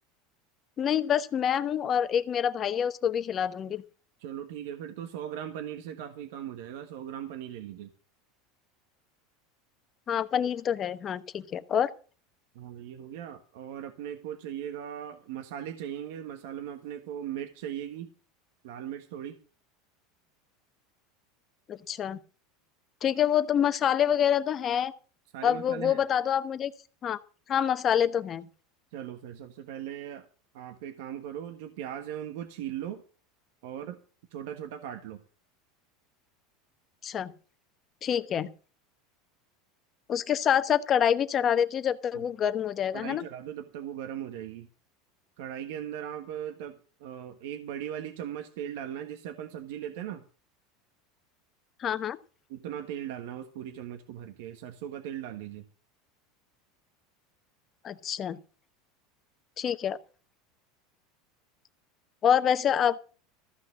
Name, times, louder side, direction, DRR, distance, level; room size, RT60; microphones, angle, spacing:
voice 1, 0.8-3.8 10.1-11.9 21.7-22.2 23.0-24.9 25.4-26.7 27.0-27.2 27.5-28.5 37.0-37.3 38.0-38.5 40.1-43.2 51.8-52.2 57.8-58.4 59.6-60.0 62.2-63.0, left 9 dB, 30° left, 11 dB, 1.1 m, -26 dB
voice 2, 4.2-7.9 12.5-18.1 18.6-19.4 25.3-26.0 28.9-30.2 30.5-33.0 33.6-34.0 34.3-35.2 42.9-44.7 45.4-50.2 52.5-55.6, right 10 dB, 75° right, 6 dB, 1.4 m, -38 dB
14.5 x 5.9 x 8.5 m, 0.39 s
supercardioid pair, 135°, 0 cm